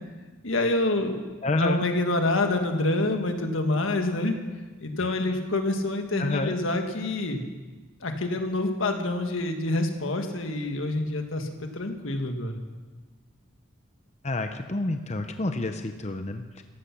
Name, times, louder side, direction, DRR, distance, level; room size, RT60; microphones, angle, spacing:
voice 1, 0.4-1.2 1.4-4.3 4.8-7.4 8.0-12.6, left 2 dB, 85° left, 5 dB, 1.6 m, -27 dB
voice 2, 1.4-1.8 5.0-5.3 6.2-6.5 14.2-16.6, left 2 dB, 35° left, 7 dB, 0.7 m, -29 dB
15.0 x 11.5 x 5.9 m, 1.3 s
head